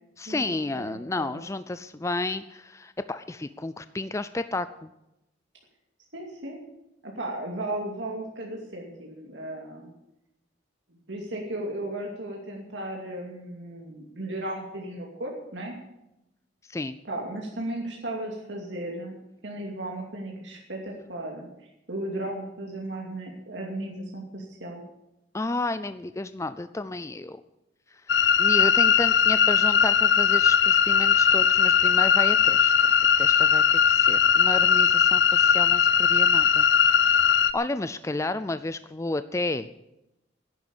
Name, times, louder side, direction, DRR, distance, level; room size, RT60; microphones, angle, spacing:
voice 1, 0.2-4.9 16.7-17.0 25.3-27.4 27.9-36.7 37.0-39.7, left 2 dB, 15° left, 12 dB, 0.4 m, -32 dB
voice 2, 0.7-1.4 6.1-6.6 7.0-9.9 11.1-15.7 17.0-19.1 19.4-21.5 21.9-24.8, right 1 dB, 80° right, -1 dB, 2.5 m, -35 dB
sound 1, 28.1-37.5, left 7 dB, 65° left, 0.6 m, -20 dB
11.0 x 10.5 x 8.7 m, 0.90 s
head